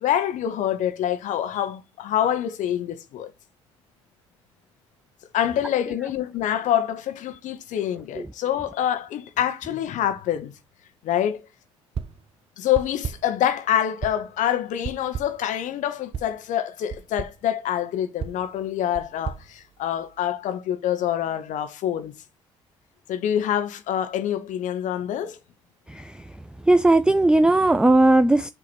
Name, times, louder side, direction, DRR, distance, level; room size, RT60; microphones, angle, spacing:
voice 1, 0.0-3.3 5.3-10.5 11.0-11.5 12.6-22.1 23.1-25.4, left 10 dB, 60° left, 0.9 m, -26 dB
sound 1, 11.9-12.3 12.7-13.4 14.0-14.4 14.8-15.5 16.1-16.4 16.9-17.4 18.2-20.3, right 6 dB, 40° right, 0.7 m, -35 dB
voice 2, 25.9-28.5, right 2 dB, 5° right, 0.4 m, -18 dB
7.7 x 2.9 x 4.1 m
hypercardioid pair, 50°, 14 cm